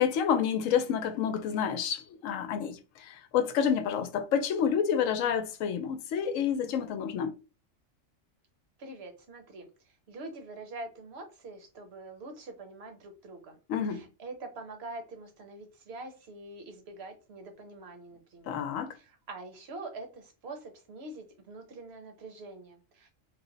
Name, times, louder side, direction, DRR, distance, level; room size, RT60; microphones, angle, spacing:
voice 1, 0.0-7.3 13.7-14.0 18.5-18.9, left 8 dB, 85° left, 1.0 m, -29 dB
voice 2, 8.8-13.6 13.8-18.6 18.9-23.1, right 2 dB, 55° right, 1.0 m, -45 dB
3.2 x 2.0 x 3.8 m
omnidirectional pair, 1.3 m